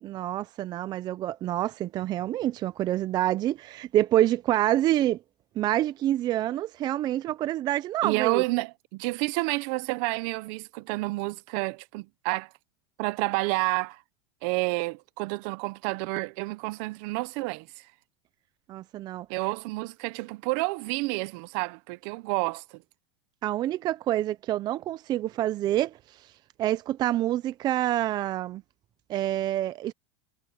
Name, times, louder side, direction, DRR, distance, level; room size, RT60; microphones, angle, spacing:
voice 1, 0.0-5.2 5.6-8.4 18.7-19.3 23.4-26.3 26.6-28.6 29.1-29.9, right 13 dB, 30° right, 0.5 m, -27 dB
voice 2, 8.0-12.5 13.0-14.0 14.4-17.9 19.3-22.8, right 24 dB, 55° right, 0.9 m, -30 dB
supercardioid pair, 150°, 15 cm